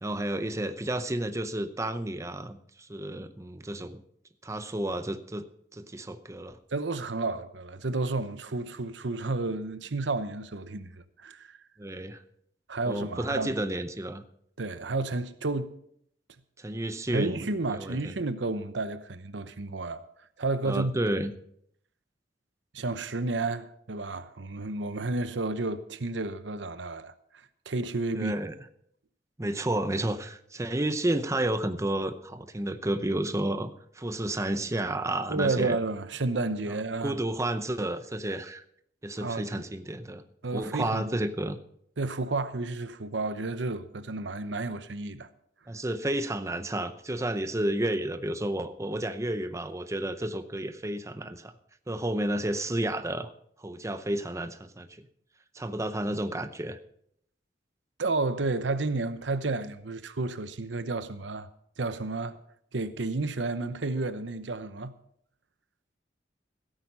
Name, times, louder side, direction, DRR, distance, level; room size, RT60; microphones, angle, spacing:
voice 1, 0.0-4.0 4.4-5.5 5.7-6.6 11.8-12.2 12.9-14.2 16.6-18.1 20.6-21.3 28.1-28.5 29.4-35.8 36.7-36.8 37.0-38.6 39.0-40.2 40.5-41.6 45.7-51.5 51.9-53.3 53.6-55.1 55.5-56.8, right 1 dB, 15° right, 0.7 m, -31 dB
voice 2, 6.7-11.6 12.7-13.5 14.6-15.7 17.1-20.0 20.4-20.9 22.7-27.1 27.7-28.3 35.3-37.2 39.2-39.6 40.4-41.2 42.0-45.3 58.0-61.5 61.8-62.4 62.7-64.9, right 3 dB, 85° right, 0.9 m, -31 dB
15.5 x 9.1 x 5.5 m
head